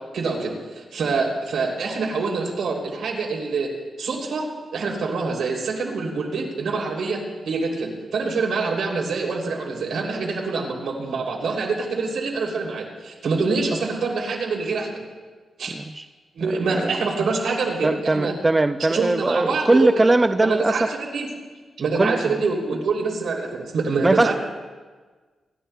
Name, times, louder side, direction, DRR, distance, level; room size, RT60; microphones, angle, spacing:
voice 1, 0.1-3.7 4.0-4.5 4.7-14.9 15.6-15.7 16.3-18.3 18.9-20.0 20.4-21.3 21.8-24.3, right 4 dB, 80° right, -1 dB, 3.0 m, -25 dB
voice 2, 17.8-20.7 22.0-22.2 24.0-24.3, right 2 dB, 20° right, 9 dB, 0.4 m, -19 dB
25.5 x 12.5 x 2.3 m, 1.4 s
wide cardioid pair, 110°, 0 cm